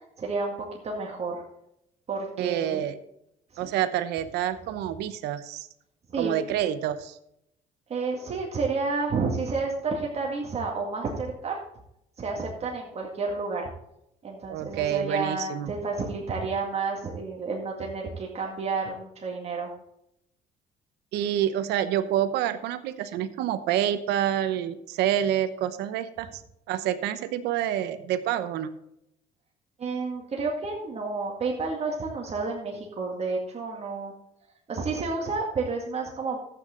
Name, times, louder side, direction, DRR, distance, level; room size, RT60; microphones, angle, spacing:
voice 1, 0.2-1.4 2.1-2.8 3.6-3.7 6.1-6.3 7.9-11.6 12.2-13.7 14.2-19.7 29.8-34.1 34.7-36.4, right 4 dB, 40° right, -1 dB, 2.1 m, -30 dB
voice 2, 2.4-2.9 3.6-5.7 6.2-7.2 14.5-15.7 21.1-26.4 26.7-28.7, right 11 dB, 85° right, 11 dB, 0.9 m, -28 dB
12.0 x 8.5 x 3.8 m, 0.79 s
cardioid pair, 110°, 17 cm